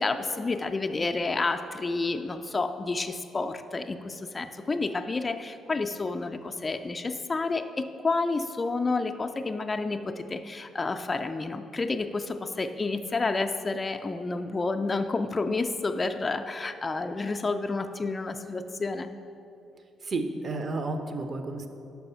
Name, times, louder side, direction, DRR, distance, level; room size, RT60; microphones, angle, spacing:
voice 1, 0.0-19.1, left 3 dB, 30° left, 7 dB, 0.3 m, -30 dB
voice 2, 20.0-21.7, right 3 dB, 45° right, 7 dB, 0.6 m, -31 dB
5.3 x 4.6 x 5.5 m, 2.8 s
hypercardioid pair, 45°, 0 cm